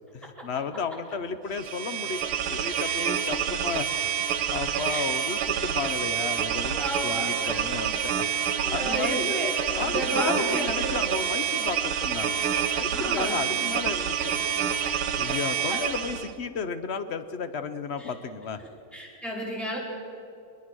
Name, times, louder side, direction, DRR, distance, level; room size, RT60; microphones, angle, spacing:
voice 1, 0.1-3.9 4.5-6.8 7.0-8.3 8.5-9.3 9.8-12.5 12.7-14.3 14.9-18.6, left 5 dB, 60° left, 10 dB, 0.6 m, -33 dB
sound 1, 1.5-16.3, right 8 dB, 85° right, 1.9 m, -28 dB
voice 2, 6.8-7.6 8.0-8.1 8.6-11.0 12.9-13.5 14.6-14.9 15.2-15.3 15.7-15.8 18.0-18.1 18.9-19.8, right 1 dB, ahead, -5 dB, 5.1 m, -33 dB
22.5 x 22.0 x 6.2 m, 2.6 s
omnidirectional pair, 2.3 m